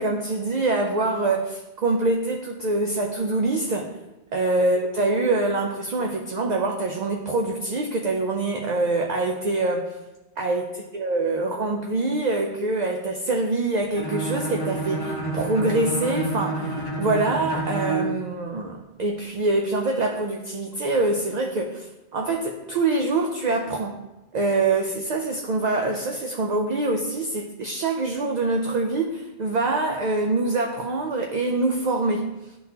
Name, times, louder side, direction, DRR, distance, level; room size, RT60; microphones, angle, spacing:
voice 1, 0.0-3.9 4.3-9.9 10.4-10.7 10.9-23.9 24.3-32.3, right 2 dB, 50° right, 2 dB, 0.6 m, -25 dB
Bowed string instrument, 13.9-18.2, right 1 dB, 25° left, 0.9 m, -29 dB
11.0 x 3.9 x 2.8 m, 1.0 s
omnidirectional pair, 1.1 m